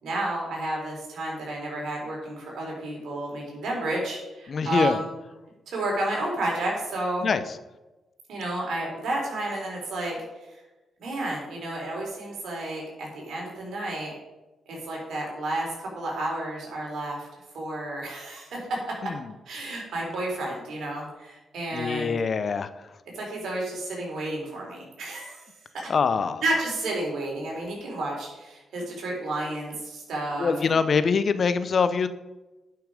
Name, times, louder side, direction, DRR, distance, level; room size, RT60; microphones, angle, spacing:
voice 1, 0.0-5.1 5.7-7.3 8.3-10.2 11.0-14.1 14.7-17.3 17.5-18.9 19.5-22.2 23.1-25.4 25.7-25.9 26.4-30.8, right 1 dB, 75° right, -2 dB, 3.9 m, -31 dB
voice 2, 4.5-5.0 7.2-7.4 19.0-19.1 21.7-22.7 25.9-26.4 30.4-32.1, left 5 dB, 55° left, 12 dB, 0.7 m, -24 dB
11.0 x 5.9 x 5.1 m, 1.1 s
supercardioid pair, 55°, 0 cm